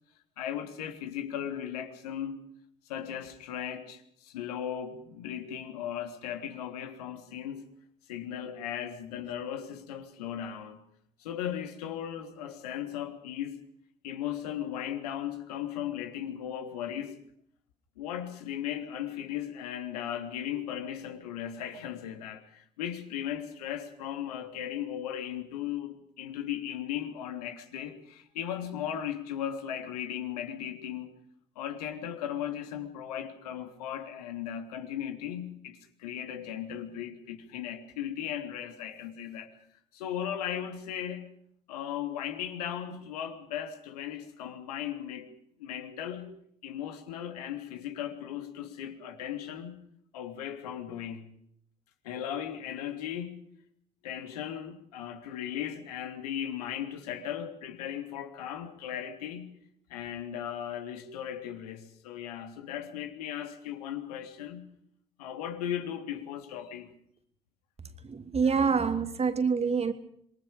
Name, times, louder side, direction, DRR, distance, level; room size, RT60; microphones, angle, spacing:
voice 1, 0.4-2.4 2.8-7.7 8.1-10.8 11.2-13.6 14.0-17.2 18.0-31.1 31.5-41.3 41.7-45.3 45.6-46.3 46.6-49.8 50.1-51.3 52.0-53.5 54.0-59.6 59.9-64.7 65.2-66.9 68.4-68.6, left 10 dB, 75° left, 3.4 m, -37 dB
voice 2, 68.1-69.9, right 5 dB, 30° right, 2.7 m, -26 dB
27.0 x 23.5 x 5.3 m
figure-of-eight pair, 55°, 20 cm